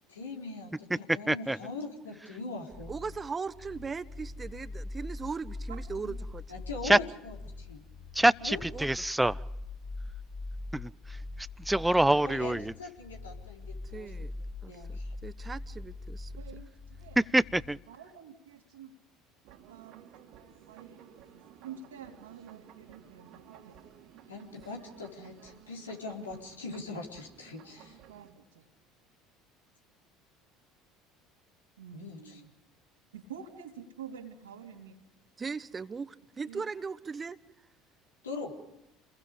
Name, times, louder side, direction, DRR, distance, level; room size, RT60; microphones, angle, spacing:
voice 1, 0.1-2.9 6.5-7.8 8.4-8.6 12.0-14.1 14.7-15.1 24.3-28.0 31.9-32.4 38.2-38.5, left 3 dB, 90° left, 4.1 m, -41 dB
voice 2, 1.3-1.6 6.8-7.0 8.1-9.4 10.7-12.7 17.3-17.8, right 1 dB, 5° right, 0.7 m, -26 dB
sound 1, 2.7-17.7, left 2 dB, 20° left, 3.0 m, -42 dB
voice 3, 2.9-6.4 8.7-8.9 13.9-14.3 14.6-16.3 35.4-37.4, right 5 dB, 25° right, 1.3 m, -38 dB
voice 4, 5.7-6.2 16.4-17.2 17.9-18.9 19.5-20.1 20.7-21.0 21.3-23.8 28.1-28.6 31.8-32.5 33.1-35.0 36.5-36.6, right 7 dB, 85° right, 3.4 m, -48 dB
sound 2, 19.4-28.3, right 9 dB, 65° right, 2.5 m, -55 dB
29.0 x 21.5 x 5.1 m
hypercardioid pair, 65°, 0 cm